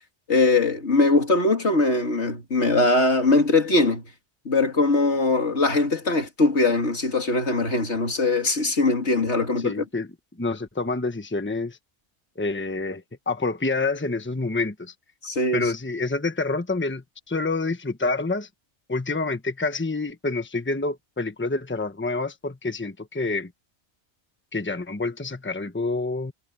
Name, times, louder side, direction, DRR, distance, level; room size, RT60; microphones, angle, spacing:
voice 1, 0.3-4.0 4.4-9.7 15.2-15.7, left 2 dB, 85° left, 2.9 m, -21 dB
voice 2, 9.6-10.1 10.4-11.8 12.4-14.9 15.5-18.5 18.9-23.5 24.5-26.3, left 3 dB, 10° left, 1.1 m, -27 dB
omnidirectional pair, 1.1 m